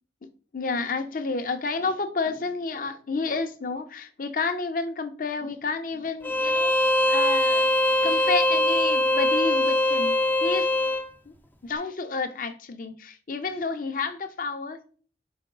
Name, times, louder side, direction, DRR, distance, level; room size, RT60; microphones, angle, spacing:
voice 1, 0.5-10.7 11.3-11.4 11.6-14.9, left 4 dB, 50° left, 0.7 m, -30 dB
Bowed string instrument, 6.2-11.1, left 1 dB, 10° left, 0.4 m, -22 dB
5.0 x 3.8 x 5.2 m
head